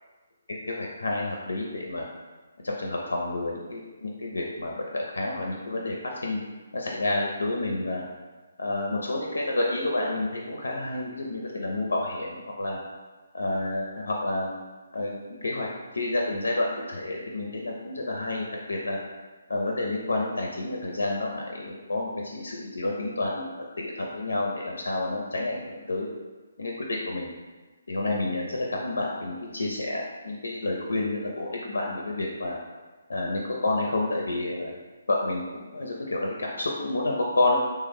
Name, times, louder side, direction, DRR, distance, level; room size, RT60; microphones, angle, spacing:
voice 1, 0.5-2.1 2.6-6.4 6.7-8.0 8.6-12.8 13.3-14.5 14.9-15.7 15.9-19.0 19.5-23.5 23.8-26.1 26.6-27.3 27.9-32.6 33.1-34.7 35.1-37.6, left 2 dB, 75° left, -1 dB, 0.5 m, -29 dB
3.3 x 2.1 x 3.3 m, 1.3 s
figure-of-eight pair, 140°, 0 cm